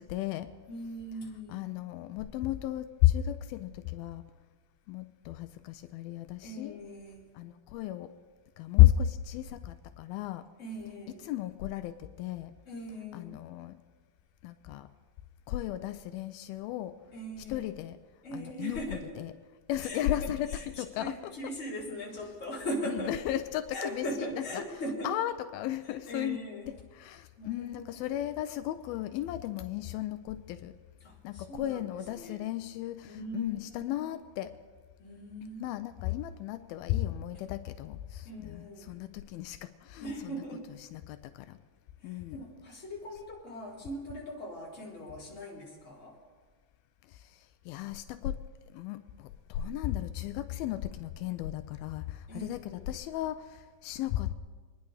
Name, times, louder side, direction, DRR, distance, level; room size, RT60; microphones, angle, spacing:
voice 1, 0.0-0.5 1.5-4.2 4.9-6.8 7.4-8.1 8.6-10.4 11.3-12.5 13.1-13.7 14.4-14.9 15.5-17.0 17.5-18.0 18.3-18.8 19.2-19.3 19.7-20.5 20.8-21.3 22.9-24.1 24.5-24.6 25.0-26.4 27.0-30.7 31.2-34.5 35.6-40.3 40.9-41.2 42.0-42.4 47.7-48.4 48.7-49.0 49.5-54.3, left 14 dB, 85° left, 10 dB, 2.4 m, -33 dB
voice 2, 0.7-1.7 6.4-7.3 10.6-11.3 12.6-13.4 17.1-17.7 18.2-19.2 19.8-23.1 23.7-25.1 25.9-26.7 27.4-28.2 31.0-32.4 33.0-34.1 35.0-35.6 38.2-38.9 40.0-40.7 42.0-46.2 52.3-52.9, equal, 20° left, -5 dB, 3.2 m, -40 dB
25.5 x 10.5 x 4.8 m, 1.4 s
omnidirectional pair, 4.3 m